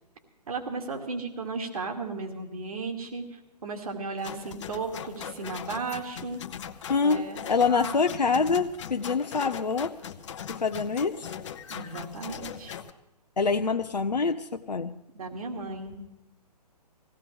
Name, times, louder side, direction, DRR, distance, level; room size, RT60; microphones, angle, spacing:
voice 1, 0.5-6.4 7.0-7.4 7.7-7.9 11.7-12.8 15.1-16.0, right 4 dB, 60° right, 3 dB, 2.4 m, -35 dB
sound 1, 4.2-12.9, left 8 dB, 45° left, 0.9 m, -40 dB
voice 2, 6.9-10.0 10.5-11.3 13.4-15.0, left 5 dB, 85° left, 5 dB, 0.7 m, -26 dB
21.0 x 16.5 x 3.4 m, 0.91 s
figure-of-eight pair, 130°, 21 cm